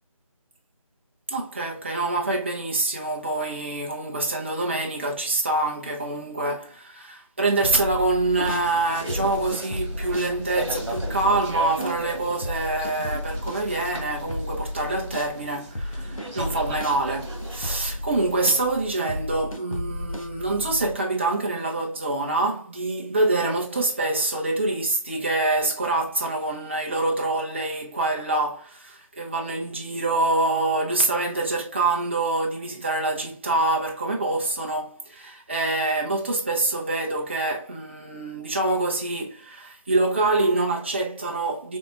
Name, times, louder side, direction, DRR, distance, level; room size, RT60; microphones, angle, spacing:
voice 1, 1.3-41.8, right 2 dB, 20° right, 0.7 m, -25 dB
sound 1, 7.6-8.7 9.1-15.3 15.7-21.0, left 1 dB, 80° left, 1.3 m, -34 dB
sound 2, 8.3-17.8, right 1 dB, 50° right, 1.5 m, -37 dB
4.1 x 3.9 x 2.4 m
figure-of-eight pair, 160°, 17 cm